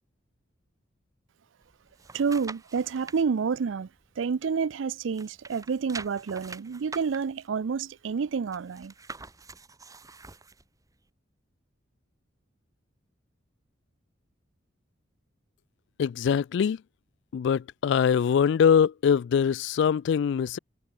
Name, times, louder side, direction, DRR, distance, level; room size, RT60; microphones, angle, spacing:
sound 1, 1.6-3.2 3.7-4.8 5.1-10.6 11.1-11.2, right 4 dB, 20° right, 1.2 m, -45 dB
voice 1, 2.1-3.9 4.2-8.9, right 5 dB, 75° right, 0.4 m, -29 dB
voice 2, 16.0-16.8 17.3-20.6, left 7 dB, 65° left, 0.3 m, -23 dB
head